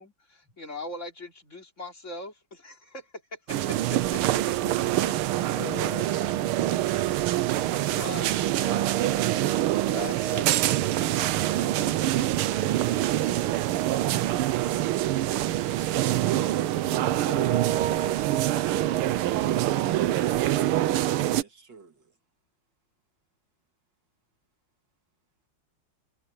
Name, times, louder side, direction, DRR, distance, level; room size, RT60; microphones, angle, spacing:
voice 1, 0.0-4.2 8.0-9.1 9.8-12.5 15.8-15.9, left 2 dB, 35° left, 3.7 m, -41 dB
sound 1, 3.5-21.4, right 14 dB, 80° right, 1.6 m, -25 dB
voice 2, 4.5-5.4 21.3-21.9, right 5 dB, 55° right, 2.6 m, -47 dB
voice 3, 5.6-6.1 6.6-6.7 16.1-16.2 16.8-17.7 18.0-18.6, left 4 dB, 85° left, 6.5 m, -41 dB
omnidirectional pair, 2.4 m